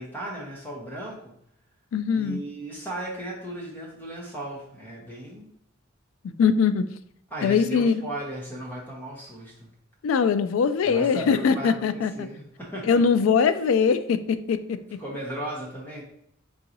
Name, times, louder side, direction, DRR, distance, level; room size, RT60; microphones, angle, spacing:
voice 1, 0.0-1.3 2.1-5.5 7.3-9.7 10.9-13.0 15.0-16.0, right 1 dB, 10° left, -4 dB, 0.8 m, -36 dB
voice 2, 1.9-2.4 6.2-6.9 7.4-8.0 10.0-12.3 12.9-14.8, left 6 dB, 75° left, 13 dB, 0.3 m, -22 dB
3.9 x 3.7 x 2.9 m, 0.70 s
head